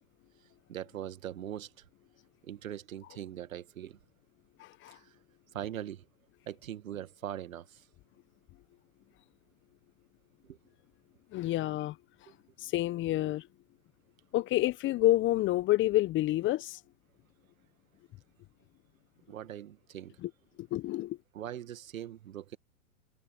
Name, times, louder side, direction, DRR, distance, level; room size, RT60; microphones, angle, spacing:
voice 1, 0.7-1.7 2.4-4.0 4.9-5.1 5.5-6.1 6.5-7.9 10.4-10.6 12.3-12.4 19.3-20.2 21.3-22.6, right 11 dB, 65° right, 2.2 m, -41 dB
voice 2, 4.6-5.0 11.3-12.0 12.6-13.5 14.3-16.8 20.2-20.3 20.6-21.2, left 15 dB, 25° left, 1.2 m, -28 dB
figure-of-eight pair, 105°, 43 cm